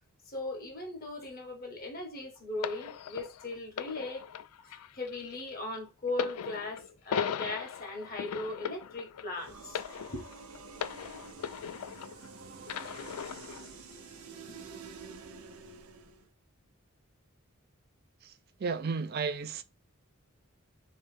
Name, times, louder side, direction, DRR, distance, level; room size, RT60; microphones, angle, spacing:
voice 1, 0.3-4.2 4.6-9.8 10.1-10.2, left 2 dB, 45° left, 1.4 m, -38 dB
sound 1, 2.6-12.3 12.7-13.7 14.5-14.6, left 8 dB, 85° left, 0.4 m, -38 dB
sound 2, 9.4-16.3, right 4 dB, 90° right, 0.8 m, -48 dB
voice 2, 18.6-19.6, right 5 dB, 45° right, 0.4 m, -33 dB
3.3 x 3.2 x 3.3 m
head